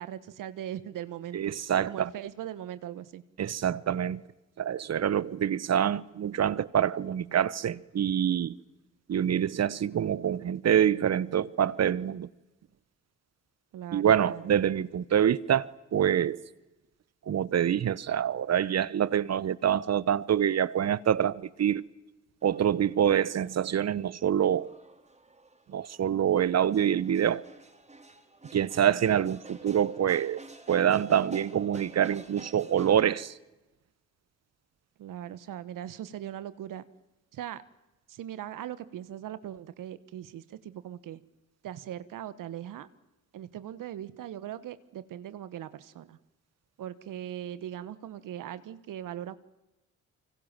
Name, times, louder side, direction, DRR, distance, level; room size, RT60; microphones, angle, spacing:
voice 1, 0.0-1.5 1.9-3.2 13.7-14.6 28.8-29.1 35.0-36.8 37.3-37.6 38.1-41.2 41.6-42.9 43.3-46.2 46.8-49.4, right 11 dB, 75° right, 1.3 m, -40 dB
voice 2, 1.3-2.1 3.4-4.2 4.6-8.6 9.1-12.3 13.9-16.4 17.3-21.8 22.4-24.7 25.7-27.4 28.5-30.4 30.7-33.3, right 9 dB, 50° right, 1.0 m, -26 dB
sound 1, 22.4-33.0, right 2 dB, 20° right, 4.4 m, -50 dB
27.0 x 24.5 x 7.5 m
supercardioid pair, 55°, 32 cm